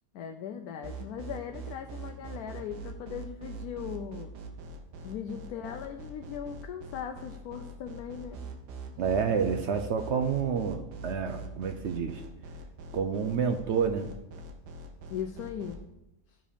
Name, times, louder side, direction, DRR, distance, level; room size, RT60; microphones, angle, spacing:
voice 1, 0.1-4.3 5.0-8.4 15.1-15.8, left 8 dB, 75° left, 6 dB, 1.0 m, -39 dB
sound 1, 0.8-15.8, right 3 dB, 90° right, 1.5 m, -42 dB
voice 2, 9.0-12.2 12.9-14.1, right 6 dB, 65° right, 8 dB, 0.7 m, -29 dB
12.5 x 4.9 x 5.1 m, 0.91 s
omnidirectional pair, 1.7 m